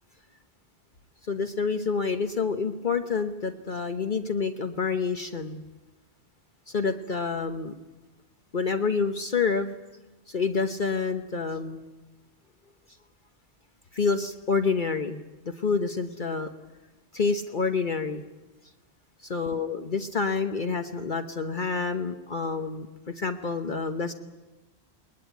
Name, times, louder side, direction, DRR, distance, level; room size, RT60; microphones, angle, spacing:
voice 1, 1.3-5.6 6.7-7.7 8.5-9.7 10.3-11.9 13.9-16.5 17.1-18.2 19.3-24.1, left 4 dB, 50° left, 7 dB, 1.2 m, -28 dB
21.5 x 20.0 x 9.3 m, 1.1 s
omnidirectional pair, 1.1 m